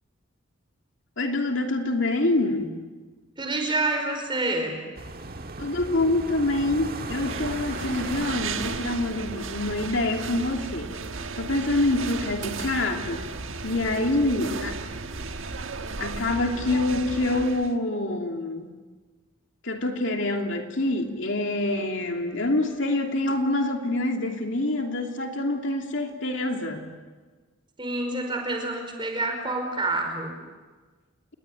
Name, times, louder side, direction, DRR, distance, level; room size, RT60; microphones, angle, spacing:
voice 1, 1.2-2.8 5.6-10.9 11.4-13.3 13.6-14.8 16.0-18.7 19.6-26.9, left 2 dB, 65° left, 3 dB, 2.9 m, -26 dB
voice 2, 3.4-4.8 27.8-30.4, right 2 dB, 25° right, 4 dB, 5.1 m, -28 dB
sound 1, 5.0-10.1, right 3 dB, 45° right, 1.7 m, -38 dB
sound 2, 7.0-17.7, right 4 dB, 75° right, 1.4 m, -34 dB
29.0 x 21.0 x 9.2 m, 1.4 s
head